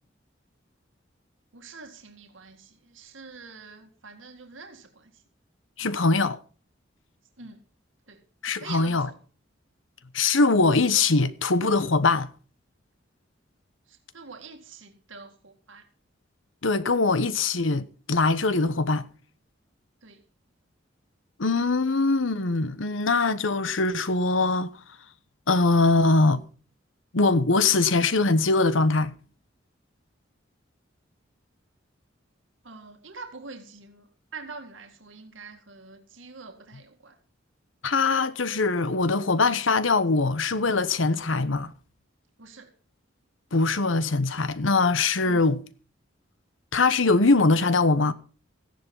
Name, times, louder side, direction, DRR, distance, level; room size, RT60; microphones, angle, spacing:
voice 1, 1.5-5.2 7.4-7.6 8.1-8.2 8.6-9.2 13.9-15.8 20.0-20.2 32.6-34.1 34.3-37.2 42.4-42.7 45.2-45.5, right 4 dB, 80° right, 2.1 m, -45 dB
voice 2, 5.8-6.4 8.4-9.1 10.1-12.3 16.6-19.1 21.4-24.7 25.5-26.4 27.1-29.1 37.8-41.7 43.5-45.6 46.7-48.1, left 3 dB, 90° left, 1.1 m, -22 dB
15.0 x 10.5 x 5.5 m
head